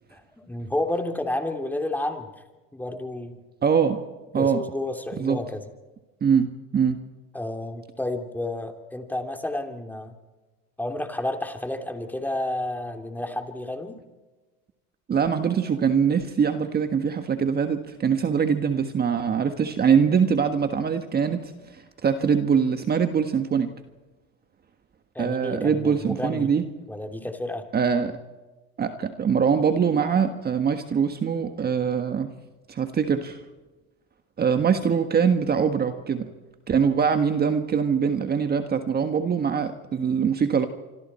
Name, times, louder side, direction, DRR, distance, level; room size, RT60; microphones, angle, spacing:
voice 1, 0.1-2.3 2.7-3.4 4.3-5.6 7.3-10.1 10.8-14.0 25.1-26.5 26.9-27.6, left 1 dB, 5° left, 4 dB, 2.9 m, -31 dB
voice 2, 3.6-4.0 4.3-4.6 5.2-5.4 6.2-7.0 15.1-23.7 25.2-26.6 27.7-28.2 28.8-32.3 32.7-33.4 34.4-36.3 36.7-40.7, right 6 dB, 30° right, 7 dB, 1.5 m, -23 dB
26.0 x 25.5 x 4.4 m, 1.2 s
supercardioid pair, 105°, 32 cm